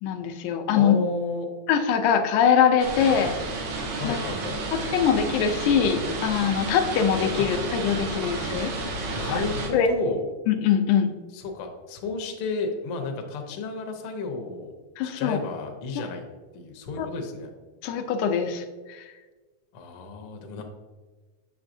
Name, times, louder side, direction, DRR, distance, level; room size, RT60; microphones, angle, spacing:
voice 1, 0.0-1.0 1.7-3.3 4.0-4.2 4.9-8.7 9.3-9.4 9.7-9.9 10.5-11.1 15.0-15.4 17.0-17.1 17.8-19.1, left 7 dB, 85° left, 6 dB, 2.0 m, -23 dB
voice 2, 0.8-1.5 4.0-4.6 7.5-7.6 9.1-10.3 11.3-14.7 15.0-16.3 16.5-17.5 19.7-20.6, left 3 dB, 70° left, 3 dB, 1.4 m, -32 dB
sound 1, 2.8-9.7, right 3 dB, 70° right, 2.3 m, -31 dB
7.2 x 6.7 x 2.6 m, 1.4 s
omnidirectional pair, 3.4 m